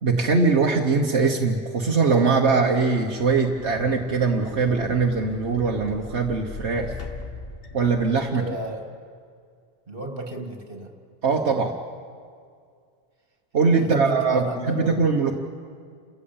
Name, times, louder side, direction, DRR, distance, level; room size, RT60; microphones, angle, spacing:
voice 1, 0.0-6.9 7.7-8.4 11.2-11.8 13.5-15.3, right 4 dB, 75° right, 1 dB, 1.5 m, -21 dB
sound 1, 3.1-8.5, left 3 dB, 60° left, 1.6 m, -39 dB
voice 2, 8.3-8.9 9.9-10.9 13.8-15.1, right 1 dB, 55° right, 4 dB, 2.4 m, -32 dB
30.0 x 14.0 x 8.8 m, 2.2 s
omnidirectional pair, 1.1 m